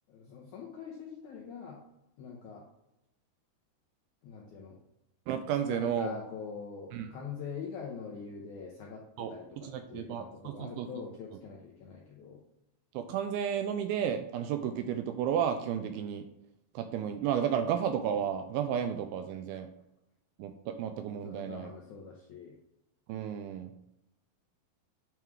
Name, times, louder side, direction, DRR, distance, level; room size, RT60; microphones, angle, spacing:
voice 1, 0.1-1.8 2.2-2.6 4.2-4.8 5.7-12.4 21.2-22.6, left 6 dB, 80° left, -2 dB, 1.8 m, -44 dB
voice 2, 5.3-6.2 6.9-7.1 9.2-9.3 9.6-10.9 12.9-16.2 16.8-19.7 20.4-21.7 23.1-23.7, right 8 dB, 85° right, 7 dB, 2.2 m, -32 dB
9.1 x 3.6 x 4.6 m, 0.87 s
omnidirectional pair, 4.7 m